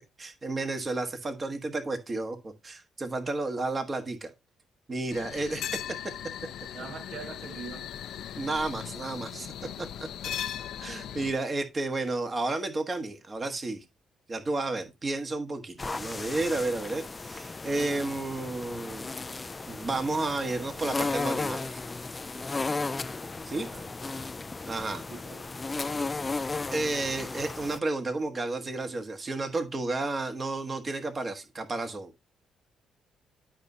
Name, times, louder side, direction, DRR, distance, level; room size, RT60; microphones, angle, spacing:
voice 1, 0.2-4.3 4.9-5.8 8.3-9.5 9.8-10.1 10.8-13.8 14.3-19.2 19.7-21.8 23.4-23.7 24.7-25.0 26.7-32.1, right 2 dB, 35° right, 1.4 m, -32 dB
sound 1, 5.1-11.3, left 10 dB, 80° left, 0.6 m, -38 dB
voice 2, 5.1-5.8 6.7-8.0 23.7-23.9 25.1-25.4, right 5 dB, 70° right, 1.6 m, -43 dB
sound 2, 15.8-27.8, left 3 dB, 25° left, 0.3 m, -35 dB
11.5 x 5.4 x 2.7 m
cardioid pair, 90°, 0 cm